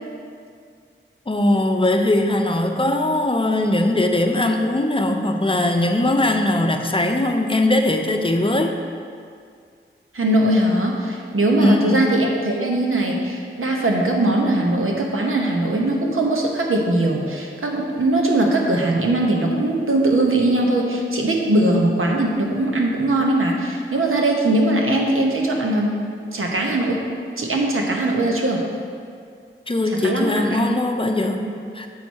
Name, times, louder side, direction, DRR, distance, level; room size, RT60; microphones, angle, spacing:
voice 1, 1.3-8.8 11.6-12.2 29.7-31.5 31.7-31.9, left 1 dB, 25° left, 4 dB, 0.6 m, -20 dB
voice 2, 10.1-25.9 26.2-27.0 27.4-28.6 29.9-30.6 31.4-31.6, right 1 dB, 80° right, 0 dB, 1.1 m, -20 dB
7.7 x 4.2 x 6.3 m, 2.2 s
wide cardioid pair, 65°, 21 cm